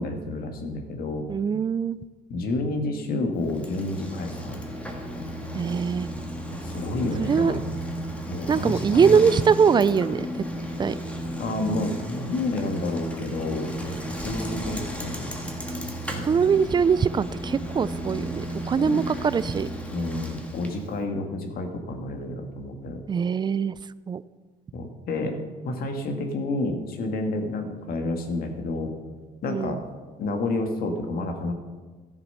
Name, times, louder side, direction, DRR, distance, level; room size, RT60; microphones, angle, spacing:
voice 1, 0.0-1.3 2.3-4.6 6.5-7.6 8.3-9.3 11.4-15.3 16.1-16.2 18.8-19.0 19.9-23.0 24.7-28.9 29.4-29.8 30.2-31.5, left 2 dB, 60° left, 4 dB, 1.7 m, -30 dB
voice 2, 1.3-2.0 5.5-6.1 7.2-7.6 8.5-10.3 10.8-11.0 16.2-19.7 23.1-23.8 24.1-24.2 29.4-29.8, right 6 dB, 25° right, 17 dB, 0.4 m, -22 dB
Bicycle, 3.4-21.0, equal, 5° left, 1.7 m, -34 dB
13.0 x 7.2 x 5.6 m, 1.3 s
cardioid pair, 110°, 17 cm